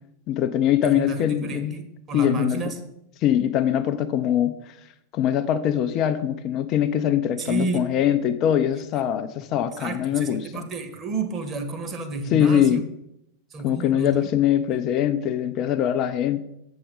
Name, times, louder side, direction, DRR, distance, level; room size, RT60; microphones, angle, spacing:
voice 1, 0.3-1.7 2.1-2.6 3.2-4.7 5.1-10.7 12.3-12.9 13.6-16.4, left 10 dB, 35° left, 9 dB, 0.5 m, -22 dB
voice 2, 0.8-2.8 7.4-7.8 8.8-8.9 9.7-12.8 13.5-14.3 14.7-14.8, right 3 dB, 25° right, 5 dB, 1.3 m, -31 dB
7.7 x 7.1 x 5.1 m, 0.81 s
figure-of-eight pair, 90°, 0 cm